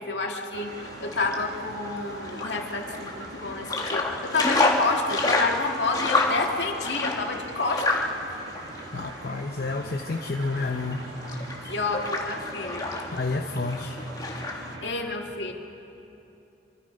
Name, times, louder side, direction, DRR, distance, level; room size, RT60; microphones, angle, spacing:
voice 1, 0.0-8.0 11.7-12.9 14.8-15.5, left 3 dB, 75° left, 1 dB, 2.4 m, -29 dB
sound 1, 0.5-14.9, right 2 dB, 80° right, 2.1 m, -42 dB
sound 2, 0.7-14.7, left 2 dB, 20° left, 1.9 m, -30 dB
voice 2, 8.9-11.1 13.1-14.0, left 3 dB, 60° left, 3 dB, 0.9 m, -30 dB
26.5 x 24.5 x 5.4 m, 2.9 s
head